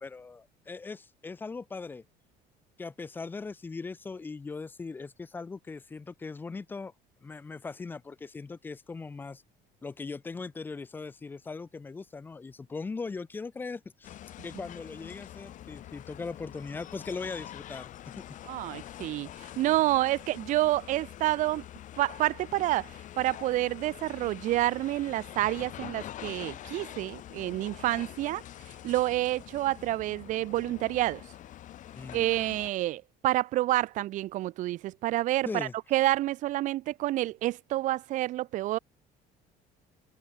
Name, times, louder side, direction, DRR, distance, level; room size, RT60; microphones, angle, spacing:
voice 1, 0.0-2.0 2.8-6.9 7.2-9.4 9.8-14.2 14.4-18.4 31.9-32.3 35.5-35.8, left 4 dB, 10° left, 0.4 m, -39 dB
sound 1, 14.0-32.7, left 12 dB, 45° left, 3.3 m, -45 dB
voice 2, 18.5-19.3 19.6-21.6 22.0-22.9 23.2-28.4 28.8-31.2 32.1-38.8, right 16 dB, 45° right, 0.5 m, -28 dB
cardioid pair, 165°, 18 cm